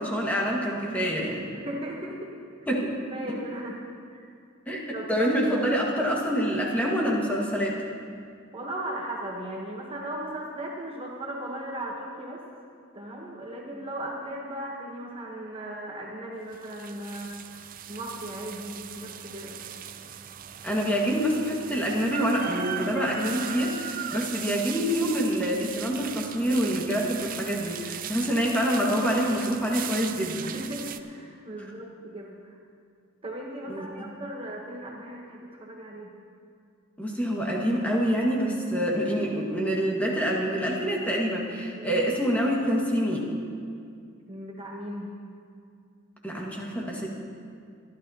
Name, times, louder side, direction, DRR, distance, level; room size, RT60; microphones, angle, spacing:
voice 1, 0.0-1.5 2.7-3.0 3.3-3.4 4.7-7.8 20.6-30.5 33.7-33.9 37.0-43.3 46.2-47.1, equal, 5° left, -3 dB, 1.7 m, -26 dB
voice 2, 1.5-2.4 3.1-3.8 4.1-4.3 4.9-5.5 8.5-12.5 12.9-17.4 17.9-19.6 30.5-32.6 33.2-36.1 41.7-42.0 44.3-45.1, right 1 dB, 25° right, -2 dB, 1.1 m, -37 dB
sound 1, 16.5-31.0, right 9 dB, 40° right, 0.5 m, -38 dB
24.0 x 12.0 x 2.9 m, 2.3 s
head